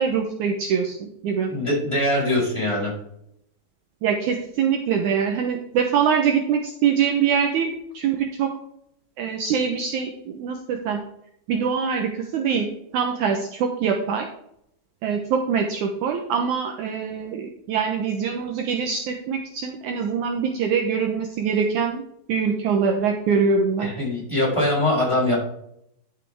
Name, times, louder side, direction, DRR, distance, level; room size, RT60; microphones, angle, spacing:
voice 1, 0.0-1.5 4.0-8.5 9.2-11.0 11.5-14.3 15.0-22.0 22.3-23.9, right 6 dB, 80° right, 3 dB, 1.8 m, -24 dB
voice 2, 1.5-2.9 23.8-25.4, left 1 dB, 5° left, -5 dB, 4.2 m, -22 dB
12.0 x 7.5 x 3.5 m, 0.73 s
omnidirectional pair, 4.6 m